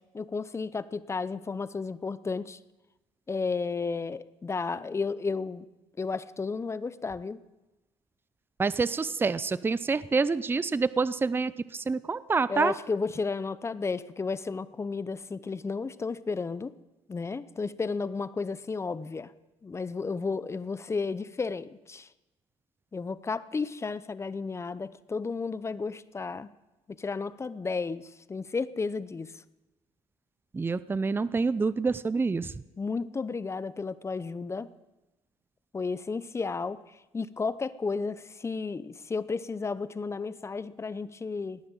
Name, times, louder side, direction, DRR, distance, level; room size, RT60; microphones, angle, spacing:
voice 1, 0.1-2.6 3.3-5.6 6.0-7.4 12.5-16.7 17.1-19.3 19.6-22.1 22.9-26.5 26.9-29.3 32.8-34.7 35.7-36.8 37.1-41.6, left 4 dB, 25° left, 16 dB, 0.7 m, -33 dB
voice 2, 8.6-12.7 30.5-32.5, right 4 dB, 20° right, 17 dB, 0.5 m, -27 dB
18.0 x 10.0 x 7.4 m, 1.0 s
cardioid pair, 95°, 12 cm